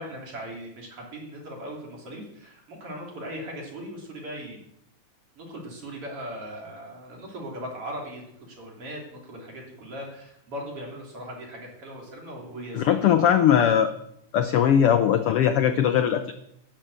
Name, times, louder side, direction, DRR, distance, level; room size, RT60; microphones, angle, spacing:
voice 1, 0.0-4.6 5.4-13.5 14.5-14.7, equal, 50° right, -1 dB, 4.1 m, -39 dB
voice 2, 12.7-13.9 14.3-16.3, left 9 dB, 75° left, 8 dB, 1.3 m, -20 dB
12.0 x 7.6 x 8.1 m, 0.77 s
omnidirectional pair, 3.3 m